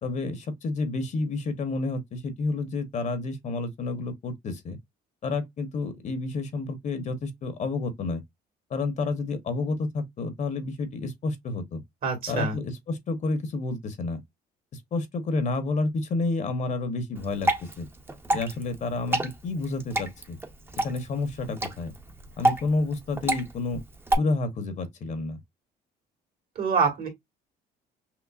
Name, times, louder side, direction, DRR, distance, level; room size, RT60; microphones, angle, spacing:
voice 1, 0.0-4.8 5.2-8.2 8.7-11.8 12.3-14.2 14.7-17.9 18.3-20.4 20.8-21.9 22.4-23.8 24.1-25.4, left 3 dB, 45° left, 1.0 m, -30 dB
voice 2, 12.0-12.6 26.6-27.1, right 5 dB, 60° right, 2.1 m, -25 dB
Water / Drip, 17.1-24.1, right 1 dB, 15° right, 0.7 m, -29 dB
5.9 x 2.0 x 2.4 m
cardioid pair, 110°, 17 cm